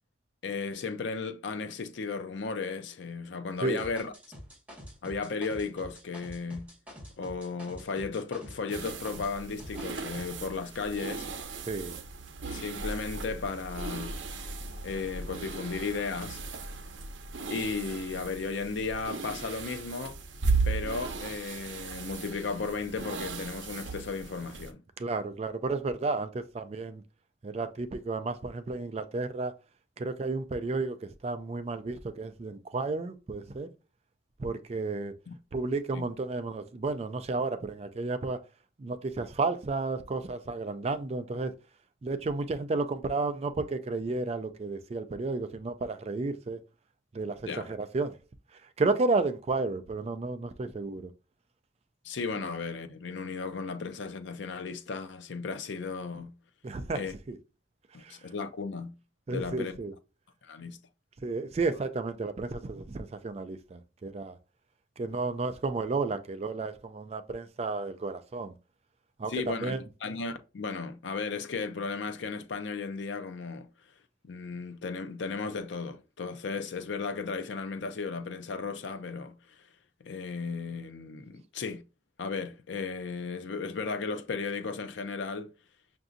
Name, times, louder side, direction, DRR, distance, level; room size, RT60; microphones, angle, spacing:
voice 1, 0.4-4.1 5.0-6.7 7.2-11.3 12.5-14.2 14.8-16.4 17.5-20.2 20.6-24.8 35.3-35.4 35.9-36.0 47.4-47.7 52.0-56.3 56.9-57.1 57.9-58.9 59.3-59.7 60.4-60.8 69.3-69.7 70.0-73.7 74.2-79.4 80.0-81.8 82.2-85.5, left 4 dB, 75° left, 0.5 m, -35 dB
sound 1, 3.8-9.3 9.6-10.3, equal, 10° right, 1.9 m, -47 dB
sound 2, 8.7-24.7, right 4 dB, 85° right, 0.6 m, -36 dB
voice 2, 11.7-12.0 25.0-27.0 27.4-29.5 30.0-33.7 34.4-35.2 35.5-38.4 38.8-41.5 42.0-46.6 47.1-48.2 48.5-51.1 56.6-57.0 57.3-57.4 58.0-58.2 59.3-59.9 61.2-64.4 65.0-68.5 69.2-69.8, right 3 dB, 35° right, 0.3 m, -32 dB
5.8 x 2.6 x 2.5 m
head